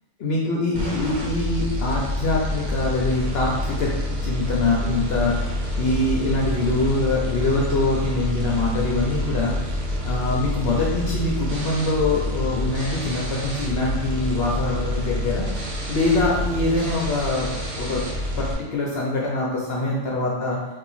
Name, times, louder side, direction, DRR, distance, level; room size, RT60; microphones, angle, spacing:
voice 1, 0.2-3.9 4.2-17.5 17.8-18.0 18.4-20.6, left 2 dB, 60° left, -4 dB, 0.7 m, -24 dB
sound 1, 0.7-18.5, left 1 dB, 90° right, 1.3 m, -27 dB
2.9 x 2.7 x 3.9 m, 1.1 s
omnidirectional pair, 1.4 m